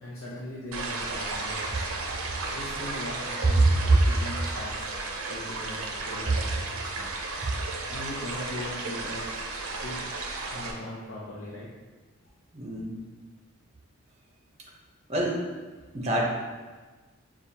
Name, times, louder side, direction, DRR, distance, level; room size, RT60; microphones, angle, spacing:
voice 1, 0.0-1.7 2.5-7.1 7.9-9.4 9.7-10.0 10.5-11.7, left 1 dB, 60° left, -8 dB, 0.7 m, -40 dB
sound 1, 0.7-10.7, right 3 dB, 75° right, 0.6 m, -34 dB
voice 2, 12.5-13.0 15.1-15.4 15.9-16.2, right 2 dB, 30° right, -2 dB, 0.7 m, -24 dB
6.7 x 2.4 x 2.8 m, 1.3 s
head